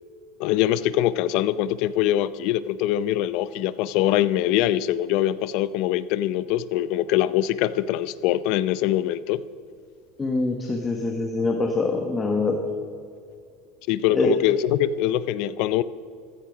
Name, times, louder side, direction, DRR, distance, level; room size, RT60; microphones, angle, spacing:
voice 1, 0.4-9.4 13.9-15.8, left 13 dB, 55° left, 16 dB, 0.6 m, -23 dB
voice 2, 10.2-12.6 14.1-14.3, left 3 dB, 15° left, 3 dB, 1.3 m, -24 dB
15.0 x 14.0 x 5.1 m, 2.3 s
supercardioid pair, 150°, 0 cm